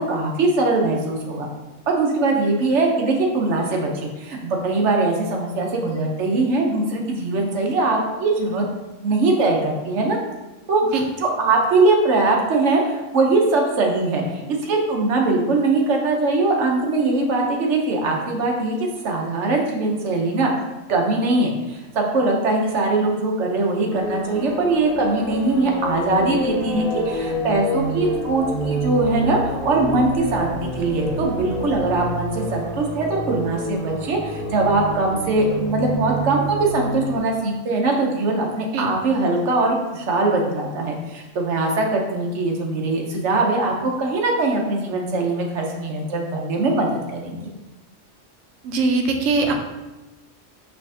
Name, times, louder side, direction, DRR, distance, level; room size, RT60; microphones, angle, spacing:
voice 1, 0.0-1.5 1.9-3.9 4.2-8.6 9.0-10.2 10.7-10.9 11.2-20.5 20.9-47.4, right 2 dB, 70° right, 1 dB, 1.1 m, -21 dB
sound 1, 23.9-37.2, right 1 dB, ahead, 1.3 m, -28 dB
voice 2, 48.6-49.5, right 3 dB, 90° right, 4 dB, 1.0 m, -21 dB
5.6 x 3.3 x 2.7 m, 1.1 s
omnidirectional pair, 1.3 m